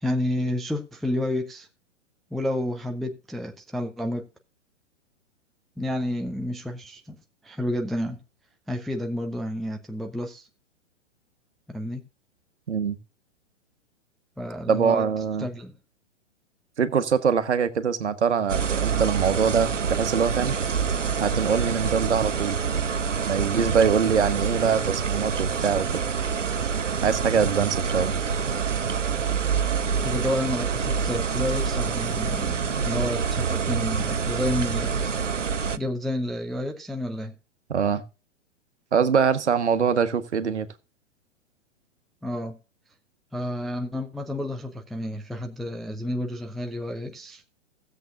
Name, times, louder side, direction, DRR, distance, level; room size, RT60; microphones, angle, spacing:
voice 1, 0.0-1.7 2.3-4.2 5.8-7.2 7.4-8.2 8.7-10.5 11.7-12.0 14.4-15.1 15.4-15.7 30.0-35.1 35.8-37.3 42.2-42.6 43.3-47.4, left 1 dB, ahead, 0.4 m, -30 dB
voice 2, 14.7-15.5 16.8-20.6 21.2-22.6 23.2-26.0 27.0-28.1 37.7-38.0 38.9-40.7, right 6 dB, 70° right, 1.3 m, -23 dB
sound 1, 18.5-35.8, right 6 dB, 85° right, 0.6 m, -26 dB
16.0 x 7.9 x 2.6 m
figure-of-eight pair, 110°, 36 cm